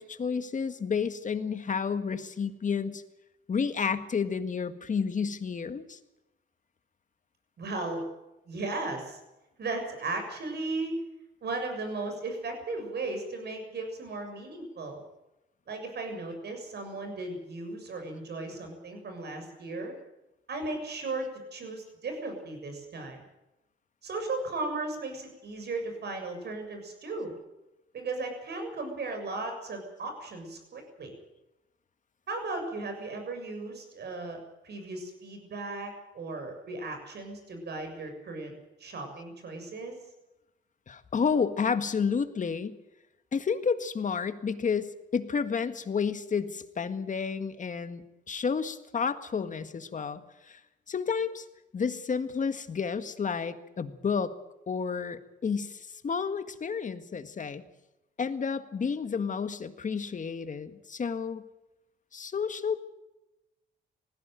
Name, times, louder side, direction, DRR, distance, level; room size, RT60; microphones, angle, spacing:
voice 1, 0.0-3.0 3.5-6.0 40.9-42.8 43.3-50.6 50.9-51.5 51.7-54.3 54.7-57.6 58.2-61.4 62.1-62.8, left 6 dB, 40° left, 10 dB, 1.8 m, -31 dB
voice 2, 7.6-8.0 8.5-9.2 9.6-10.9 11.4-15.0 15.7-19.9 20.5-23.2 24.0-27.3 27.9-31.1 32.3-34.4 34.6-40.0, right 3 dB, 55° right, 5 dB, 6.8 m, -36 dB
19.5 x 16.0 x 9.2 m, 0.96 s
cardioid pair, 90°, 20 cm